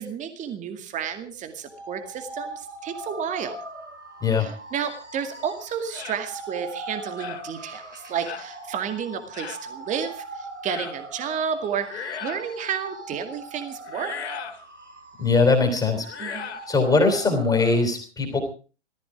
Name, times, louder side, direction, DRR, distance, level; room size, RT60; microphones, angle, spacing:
voice 1, 0.0-3.6 4.4-14.4 16.2-16.5, right 7 dB, 20° right, 8 dB, 2.2 m, -31 dB
scary cry, 1.6-17.7, right 2 dB, 85° right, 6.7 m, -41 dB
sound 1, 5.9-6.2 7.2-7.5 8.2-8.5 9.3-9.6 10.6-11.0 11.8-12.5 13.9-14.6 16.0-16.7, left 7 dB, 65° left, 2.6 m, -36 dB
voice 2, 15.2-16.1 16.7-18.4, left 3 dB, 10° left, 2 dB, 3.9 m, -21 dB
18.0 x 15.0 x 5.0 m, 0.37 s
figure-of-eight pair, 110°, 35 cm